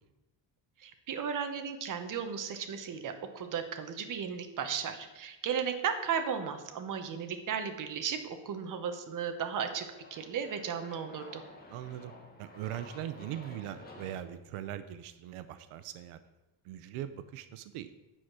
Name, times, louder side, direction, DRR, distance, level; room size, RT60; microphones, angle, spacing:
voice 1, 0.8-9.9 10.1-11.4, right 7 dB, 40° right, 7 dB, 0.9 m, -35 dB
Aircraft, 8.4-14.2, left 2 dB, 20° left, 1.4 m, -52 dB
voice 2, 11.7-12.1 12.4-16.2 16.6-17.9, right 11 dB, 90° right, 12 dB, 0.7 m, -40 dB
9.2 x 4.9 x 6.0 m, 1.0 s
cardioid pair, 160°, 49 cm